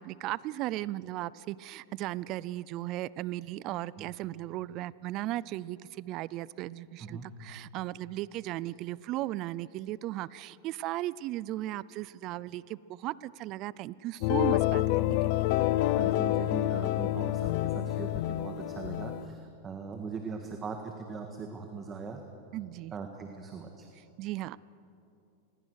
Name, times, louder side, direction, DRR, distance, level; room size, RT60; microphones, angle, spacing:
voice 1, 0.0-15.5 22.5-22.9 24.2-24.6, right 15 dB, 40° right, 21 dB, 0.4 m, -36 dB
sound 1, 14.2-19.3, left 15 dB, 55° left, 0.6 m, -28 dB
voice 2, 16.0-22.2 22.9-23.9, right 5 dB, 20° right, 4 dB, 1.6 m, -40 dB
27.0 x 21.0 x 6.5 m, 2.8 s
supercardioid pair, 140°, 0 cm